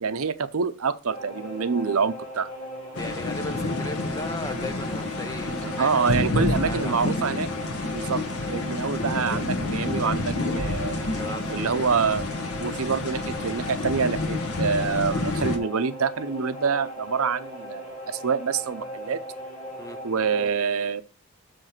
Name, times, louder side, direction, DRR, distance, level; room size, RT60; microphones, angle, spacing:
voice 1, 0.0-2.5 5.6-7.5 7.9-11.1 11.5-12.3 12.6-19.2 20.0-21.0, right 5 dB, 75° right, 0.7 m, -26 dB
sound 1, 1.1-20.4, equal, 30° left, 3.1 m, -39 dB
sound 2, 2.9-15.6, left 2 dB, 85° left, 1.5 m, -29 dB
voice 2, 2.9-7.1 11.2-11.9 19.8-20.0, left 1 dB, 15° left, 0.8 m, -37 dB
6.6 x 5.3 x 6.0 m
head